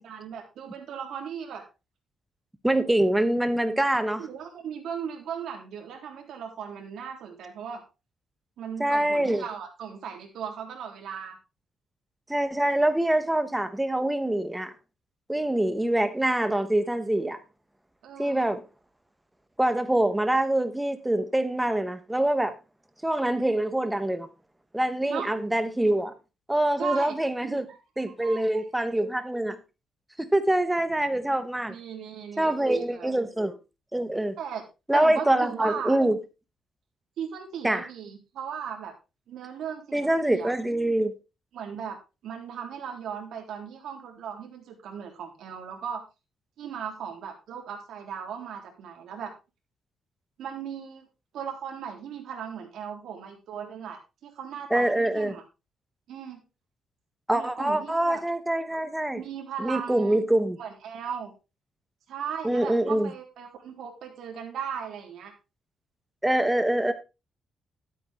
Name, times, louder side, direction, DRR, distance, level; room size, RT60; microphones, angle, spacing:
voice 1, 0.0-1.7 4.2-7.8 8.6-11.4 18.0-18.5 25.0-25.3 26.8-27.2 27.4-27.8 28.2-28.6 31.7-33.1 34.4-34.6 34.9-36.0 37.2-38.9 39.3-40.5 41.5-42.0 42.2-46.0 46.6-49.3 50.4-51.1 51.3-55.4 56.1-56.4 57.3-58.2 59.1-60.2 60.6-61.3 62.1-65.3, right 8 dB, 70° right, 3.5 m, -37 dB
voice 2, 2.6-4.3 8.8-9.4 12.3-14.7 15.3-17.4 18.2-18.6 19.6-22.5 23.0-24.3 24.7-26.1 26.5-27.6 28.0-29.6 30.2-31.8 32.4-33.6 33.9-34.4 34.9-36.2 37.6-37.9 39.9-41.1 54.7-55.4 57.3-59.2 59.6-60.6 62.4-63.1 66.2-66.9, right 1 dB, 5° right, 1.1 m, -25 dB
12.5 x 8.5 x 3.6 m
cardioid pair, 150°, 0 cm